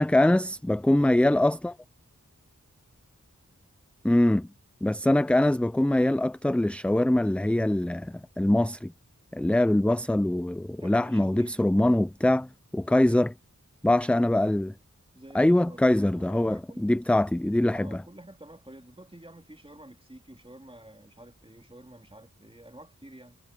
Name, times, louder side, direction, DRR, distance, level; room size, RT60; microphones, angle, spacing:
voice 1, 0.0-1.8 4.0-4.5 4.8-8.9 9.3-13.3 13.8-14.7 15.3-18.0, left 1 dB, 5° left, 0.4 m, -23 dB
voice 2, 10.7-11.6 12.9-13.0 15.1-17.0 17.7-23.4, right 1 dB, 15° right, 3.2 m, -49 dB
wide cardioid pair, 50°, 31 cm